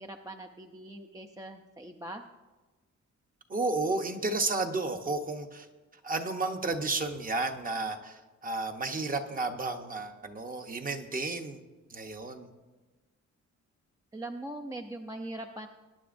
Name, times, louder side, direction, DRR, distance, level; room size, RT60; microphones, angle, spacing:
voice 1, 0.0-2.2 14.1-15.7, right 1 dB, 10° right, 5 dB, 0.4 m, -41 dB
voice 2, 3.5-5.7 6.0-11.6 11.9-12.5, right 3 dB, 30° right, 6 dB, 0.9 m, -32 dB
22.0 x 10.5 x 2.6 m, 1.2 s
wide cardioid pair, 170°, 30 cm